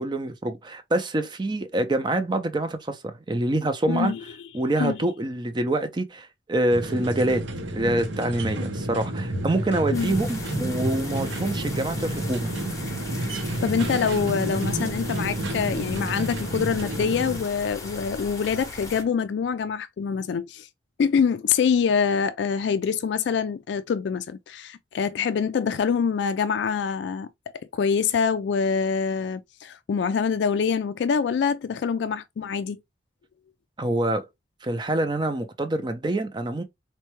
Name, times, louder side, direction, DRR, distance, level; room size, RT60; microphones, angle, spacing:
voice 1, 0.0-4.1 4.5-7.4 7.7-12.5 33.8-34.3 34.6-36.6, right 1 dB, 25° right, 0.5 m, -26 dB
voice 2, 3.9-4.2 4.8-5.0 9.9-10.1 13.2-20.7 21.0-27.3 27.7-32.8, left 6 dB, 70° left, 0.3 m, -25 dB
sound 1, 6.7-17.4, right 1 dB, 80° right, 0.7 m, -30 dB
sound 2, 9.9-19.0, left 2 dB, 15° left, 0.7 m, -39 dB
4.3 x 2.2 x 2.9 m
head